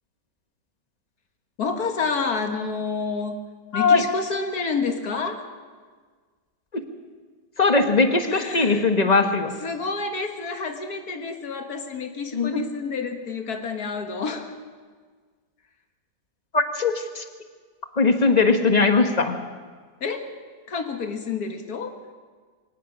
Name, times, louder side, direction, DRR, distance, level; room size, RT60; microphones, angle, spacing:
voice 1, 1.6-3.4 3.7-5.5 8.3-8.9 9.6-14.5 20.0-20.3 20.7-22.0, left 4 dB, 60° left, 5 dB, 2.0 m, -29 dB
voice 2, 3.7-4.0 6.7-6.8 7.6-9.5 12.3-12.6 16.5-17.2 18.0-19.3, left 4 dB, 25° left, 6 dB, 1.3 m, -20 dB
23.0 x 18.5 x 6.2 m, 1.5 s
omnidirectional pair, 1.8 m